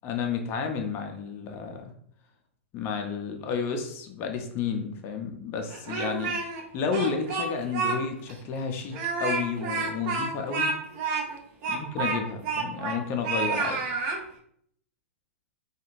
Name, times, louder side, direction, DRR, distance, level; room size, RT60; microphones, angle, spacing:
voice 1, 0.0-1.9 2.7-6.3 6.7-10.7 11.7-13.8, left 5 dB, 30° left, 4 dB, 0.5 m, -31 dB
Speech, 5.7-6.6 6.9-8.0 8.3-8.4 8.9-13.0 13.2-14.2, right 4 dB, 40° right, 0.6 m, -29 dB
2.5 x 2.4 x 3.0 m, 0.67 s
figure-of-eight pair, 105°, 8 cm